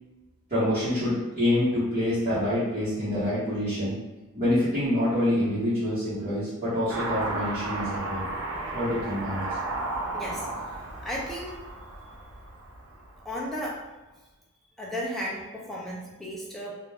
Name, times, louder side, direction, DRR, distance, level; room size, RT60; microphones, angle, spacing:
voice 1, 0.5-4.0 4.3-8.3 8.7-9.5, left 1 dB, 35° right, -14 dB, 1.1 m, -26 dB
Car passing by / Accelerating revving vroom, 6.9-13.5, right 2 dB, 60° right, 0.6 m, -34 dB
voice 2, 10.1-10.5 11.0-11.6 13.2-13.8 14.8-16.7, equal, ahead, -5 dB, 0.5 m, -34 dB
2.5 x 2.2 x 3.3 m, 1.1 s
head